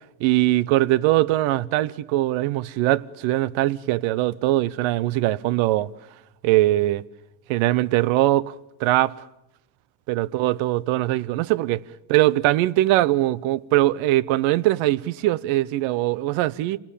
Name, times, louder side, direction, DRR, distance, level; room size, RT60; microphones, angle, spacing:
voice 1, 0.2-5.9 6.4-7.0 7.5-8.5 8.8-9.1 10.1-11.8 12.1-16.8, right 16 dB, 75° right, 0.8 m, -21 dB
25.5 x 18.5 x 8.4 m
supercardioid pair, 90°, 48 cm